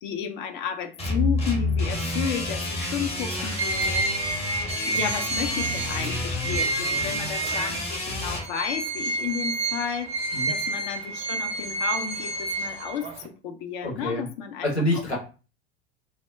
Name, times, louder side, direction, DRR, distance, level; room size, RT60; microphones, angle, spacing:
voice 1, 0.0-4.1 4.8-14.7, left 7 dB, 50° left, 7 dB, 0.5 m, -32 dB
sound 1, 1.0-8.4, left 2 dB, 20° left, 0.8 m, -29 dB
sound 2, 2.8-3.0 3.3-4.1 4.9-5.2 6.0-6.3 7.4-7.9 8.2-8.3, right 2 dB, 90° right, 0.6 m, -40 dB
sound 3, 3.6-8.0 8.4-13.3, right 3 dB, 20° right, 0.4 m, -29 dB
voice 2, 13.8-14.2 14.6-15.2, left 1 dB, 90° left, -2 dB, 0.9 m, -27 dB
2.1 x 2.1 x 3.4 m, 0.34 s
figure-of-eight pair, 75°, 32 cm